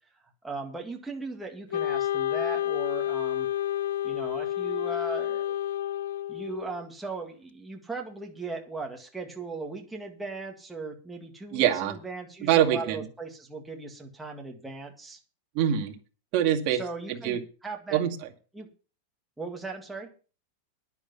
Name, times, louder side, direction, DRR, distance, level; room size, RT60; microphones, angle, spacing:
voice 1, 0.4-3.5 4.0-5.7 6.3-15.2 16.7-18.0 18.5-18.7 19.4-20.1, right 3 dB, 5° right, 1 dB, 2.0 m, -38 dB
Wind instrument woodwind instrument, 1.7-6.8, left 12 dB, 85° left, 0.5 m, -30 dB
voice 2, 11.5-12.0 12.4-13.0 15.5-15.9 16.3-16.8 17.1-17.4 17.9-18.2, right 10 dB, 40° right, 3 dB, 2.2 m, -24 dB
10.5 x 10.0 x 5.7 m, 0.36 s
supercardioid pair, 170°, 0 cm